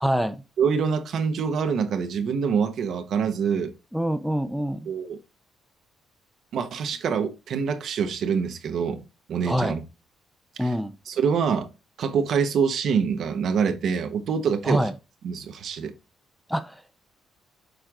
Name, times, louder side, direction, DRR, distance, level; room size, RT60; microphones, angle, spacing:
voice 1, 0.0-0.4 3.9-4.9 9.4-9.8 10.6-10.9 14.6-14.9 16.5-16.8, equal, ahead, 0.7 m, -25 dB
voice 2, 0.6-3.7 4.9-5.2 6.5-9.0 9.3-9.8 10.6-10.7 11.1-11.7 12.0-14.9 15.2-15.9, right 6 dB, 65° right, 1.1 m, -25 dB
6.6 x 4.6 x 3.7 m
cardioid pair, 90°, 0 cm